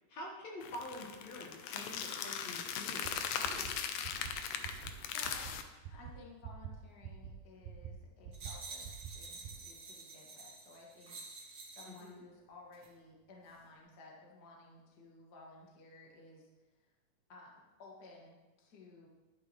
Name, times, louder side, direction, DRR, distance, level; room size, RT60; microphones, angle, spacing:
voice 1, 0.1-3.8 11.8-12.2, left 1 dB, 55° left, -3 dB, 2.5 m, -47 dB
sound 1, 0.6-5.6, left 8 dB, 75° left, 2.3 m, -39 dB
sound 2, 3.1-3.2 3.4-3.7 4.0-4.3 4.6-4.9 5.2-5.5 5.8-6.1 6.4-6.7 7.0-7.3 7.6-7.9 8.2-8.5 8.8-9.1 9.4-9.5, right 10 dB, 80° right, 2.4 m, -45 dB
voice 2, 5.1-16.5 17.3-19.1, left 2 dB, 35° left, -2 dB, 2.0 m, -56 dB
sound 3, 8.3-12.1 12.7-12.9, right 4 dB, 40° right, 2.0 m, -49 dB
13.0 x 11.5 x 3.2 m, 1.2 s
omnidirectional pair, 4.0 m